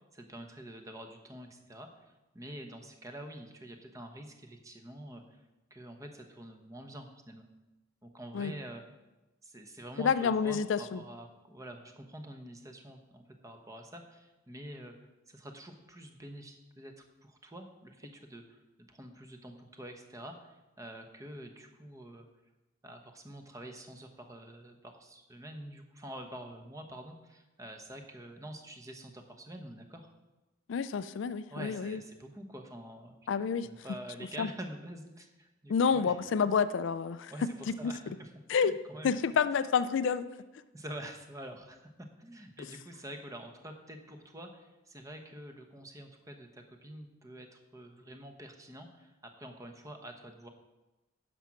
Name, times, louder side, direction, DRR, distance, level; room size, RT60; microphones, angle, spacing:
voice 1, 0.1-5.4 5.7-7.5 8.0-8.8 9.4-14.9 15.3-22.3 22.8-30.1 31.5-33.2 33.6-36.2 37.3-39.2 40.7-50.5, right 1 dB, 15° right, 5 dB, 0.9 m, -47 dB
voice 2, 10.0-11.0 30.7-32.0 33.3-33.7 34.4-34.5 35.7-37.3 37.8-37.9 38.5-38.7 39.0-40.3, left 6 dB, 65° left, 14 dB, 0.4 m, -28 dB
10.0 x 6.2 x 5.9 m, 1.1 s
head